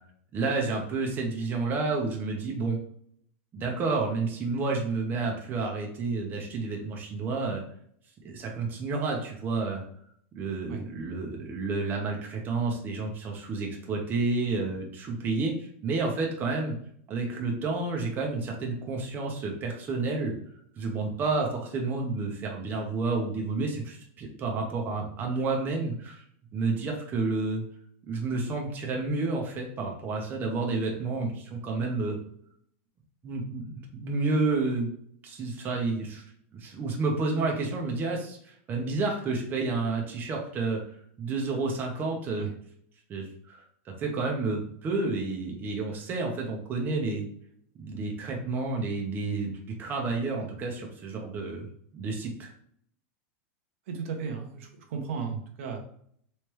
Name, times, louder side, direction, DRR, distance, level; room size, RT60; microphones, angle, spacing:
voice 1, 0.3-2.8 3.5-7.6 8.2-9.8 10.3-16.8 17.1-20.3 20.8-26.2 26.5-27.6 28.1-32.2 33.2-34.9 35.2-36.2 36.5-42.5 43.1-43.6 44.0-47.3 47.7-51.7 51.9-52.5, right 3 dB, 25° right, 0 dB, 0.8 m, -30 dB
voice 2, 53.9-55.8, right 6 dB, 70° right, 3 dB, 0.8 m, -35 dB
3.3 x 3.2 x 3.1 m, 0.64 s
supercardioid pair, 140°, 7 cm